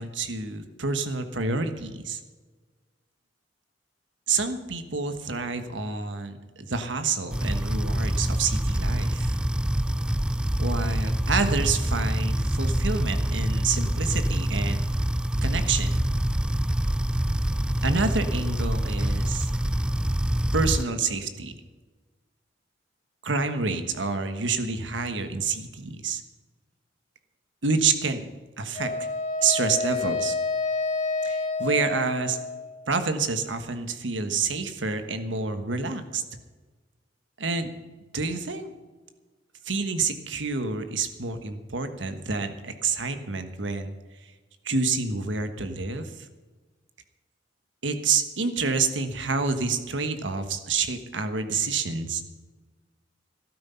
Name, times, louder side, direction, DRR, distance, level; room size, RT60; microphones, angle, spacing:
voice 1, 0.0-2.2 4.3-9.4 10.6-14.8 15.4-16.0 17.8-19.5 20.5-21.5 23.2-26.2 27.6-28.3 28.6-29.1 29.4-30.4 31.2-32.4 32.9-36.2 37.4-37.7 38.1-38.7 39.6-43.9 44.6-46.1 47.8-52.2, right 4 dB, 85° right, 8 dB, 1.4 m, -28 dB
sound 1, 7.3-20.8, right 1 dB, 5° right, 0.3 m, -26 dB
Wind instrument woodwind instrument, 28.7-32.9, left 3 dB, 40° left, 0.9 m, -29 dB
13.5 x 12.0 x 5.7 m, 1.3 s
head